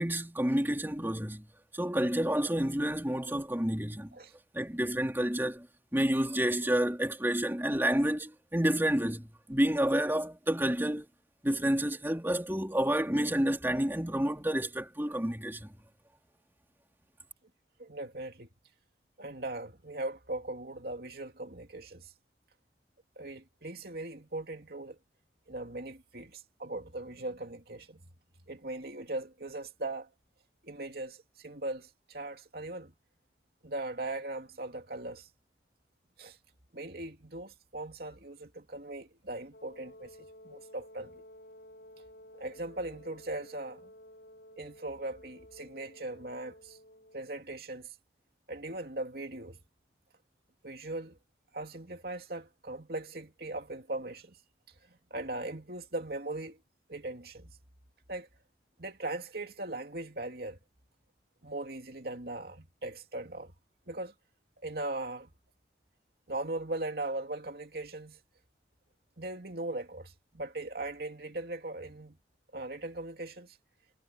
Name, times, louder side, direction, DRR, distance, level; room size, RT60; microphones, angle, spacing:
voice 1, 0.0-1.5 1.7-4.1 4.5-5.7 5.9-11.1 11.4-15.7, right 1 dB, 10° right, 3.4 m, -29 dB
voice 2, 17.8-18.5 19.2-22.1 23.2-25.0 25.5-28.0 28.5-30.1 30.6-32.9 33.6-35.3 36.2-36.4 36.7-41.2 42.3-43.9 44.6-46.8 47.1-48.0 48.5-49.6 50.6-51.2 51.5-54.4 55.1-56.6 56.9-57.6 58.1-58.3 58.8-60.6 61.4-63.5 63.9-64.1 64.6-65.3 66.3-68.2 69.2-72.2 72.5-73.6, right 2 dB, 55° right, 2.7 m, -39 dB
Wind instrument woodwind instrument, 39.5-47.4, left 1 dB, 65° left, 4.9 m, -53 dB
head